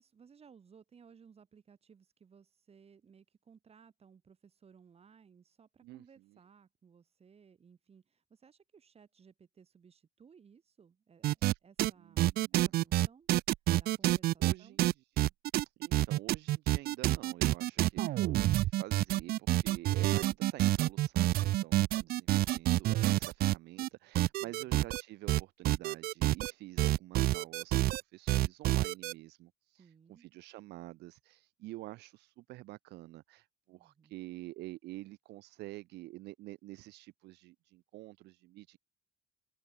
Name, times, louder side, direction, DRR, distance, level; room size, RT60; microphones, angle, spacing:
voice 1, 0.0-13.3 13.8-14.8 29.8-30.3 33.7-34.2, right 6 dB, 35° right, 7.1 m, -61 dB
sound 1, 11.2-11.5 11.8-11.9 12.2-14.5 14.8-23.9 24.1-25.0 25.3-26.5 26.8-28.0 28.3-29.1, right 16 dB, 65° right, 0.5 m, -28 dB
voice 2, 12.0-12.8 14.4-15.3 15.8-38.8, right 18 dB, 80° right, 1.1 m, -48 dB
open air
cardioid pair, 110°, 17 cm